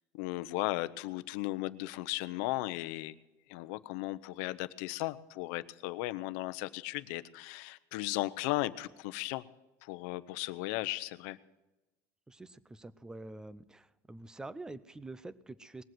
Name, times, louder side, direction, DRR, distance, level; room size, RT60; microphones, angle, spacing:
voice 1, 0.1-3.2 3.5-9.4 9.8-11.4, left 18 dB, 75° left, 14 dB, 0.7 m, -36 dB
voice 2, 12.3-15.8, right 2 dB, 10° right, 17 dB, 0.5 m, -46 dB
20.0 x 7.7 x 7.8 m, 1.0 s
cardioid pair, 145°, 9 cm